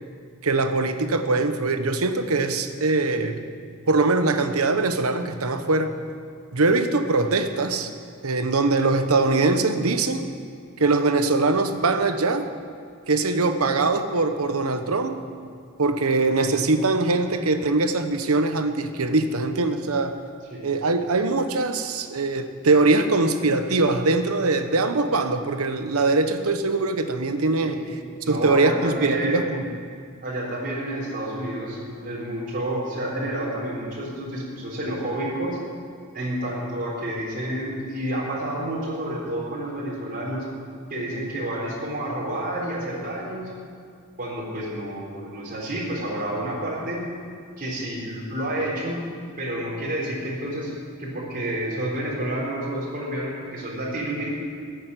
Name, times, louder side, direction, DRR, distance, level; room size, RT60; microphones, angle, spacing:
voice 1, 0.4-3.4 3.9-6.0 6.5-7.9 8.2-10.3 10.8-12.5 13.1-15.2 15.8-20.2 20.6-27.8 28.3-29.8, right 3 dB, 80° right, 8 dB, 1.1 m, -22 dB
voice 2, 27.6-29.5 30.2-35.6 36.1-40.4 40.9-43.5 44.2-47.0 47.6-49.0 49.4-50.7 51.0-54.3, right 1 dB, 40° right, -6 dB, 3.9 m, -29 dB
15.0 x 8.6 x 9.7 m, 2.3 s
head